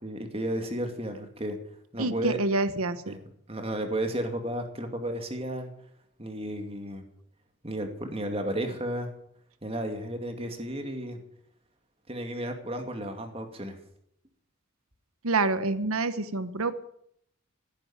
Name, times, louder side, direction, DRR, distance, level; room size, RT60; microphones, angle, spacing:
voice 1, 0.0-1.6 1.9-2.4 3.1-3.2 3.5-5.7 6.2-7.0 7.6-9.1 9.6-11.2 12.1-13.8, right 1 dB, 25° right, 5 dB, 2.4 m, -33 dB
voice 2, 2.0-3.1 15.2-16.7, right 3 dB, 80° right, 12 dB, 1.1 m, -27 dB
16.5 x 10.0 x 8.8 m, 0.71 s
head